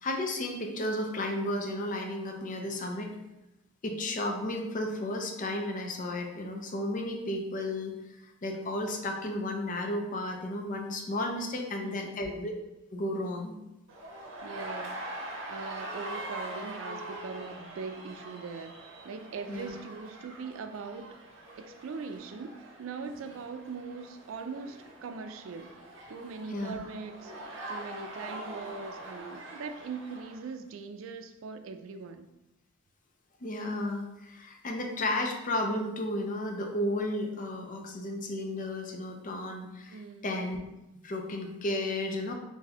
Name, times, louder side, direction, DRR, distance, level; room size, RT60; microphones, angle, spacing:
voice 1, 0.0-3.2 3.8-7.9 8.4-12.5 12.9-13.6 19.5-19.7 26.5-26.8 33.4-40.6 41.0-42.3, left 1 dB, 40° left, 3 dB, 0.5 m, -33 dB
voice 2, 11.8-12.2 14.4-21.1 21.6-25.8 26.1-27.3 27.7-32.3 39.9-40.4, right 4 dB, 90° right, 8 dB, 0.3 m, -41 dB
sound 1, 13.9-30.5, right 1 dB, 65° right, 0.7 m, -43 dB
3.8 x 2.6 x 2.9 m, 0.94 s
head